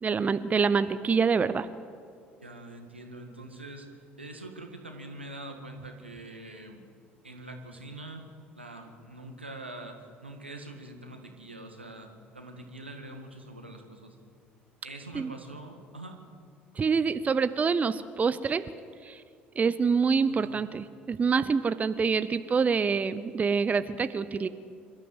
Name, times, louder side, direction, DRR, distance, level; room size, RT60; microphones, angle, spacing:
voice 1, 0.0-1.7 15.1-15.3 16.8-18.6 19.0-19.2 19.6-24.5, right 5 dB, 25° right, 13 dB, 0.7 m, -26 dB
voice 2, 2.4-6.8 7.2-8.2 8.5-14.2 14.8-16.2 20.4-20.6, right 1 dB, 85° right, 4 dB, 1.8 m, -44 dB
26.5 x 13.0 x 8.0 m, 2.3 s
figure-of-eight pair, 60°, 6 cm